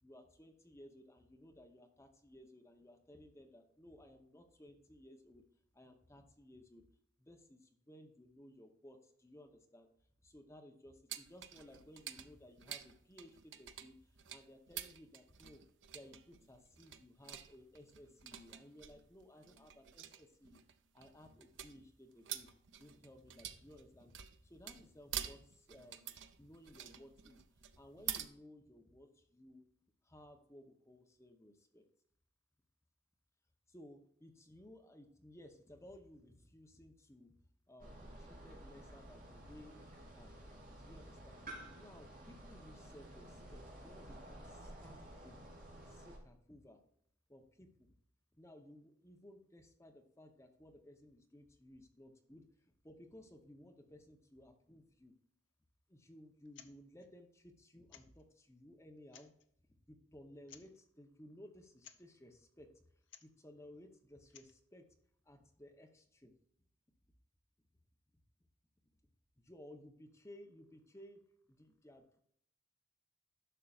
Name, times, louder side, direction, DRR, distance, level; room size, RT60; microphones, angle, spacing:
voice 1, 0.0-5.4 5.7-6.8 7.2-9.9 10.2-15.6 15.9-20.6 20.9-22.5 22.8-27.4 27.7-29.7 30.0-31.8 33.7-37.3 37.7-40.4 40.8-41.4 41.7-46.8 47.3-47.9 48.3-55.1 55.9-59.3 59.9-62.8 63.2-64.9 65.2-66.3 69.4-71.2 71.5-72.2, left 1 dB, 15° left, 4 dB, 0.7 m, -58 dB
sound 1, 11.1-28.3, right 10 dB, 65° right, 0.6 m, -48 dB
sound 2, 37.8-46.2, right 1 dB, 40° right, 2.9 m, -53 dB
sound 3, 56.5-56.7 57.0-57.1 57.9-58.3 59.0-59.5 60.5-60.8 61.8-62.1 63.0-63.4 64.2-64.6, left 9 dB, 60° left, 0.6 m, -58 dB
11.0 x 6.5 x 2.4 m, 0.67 s
head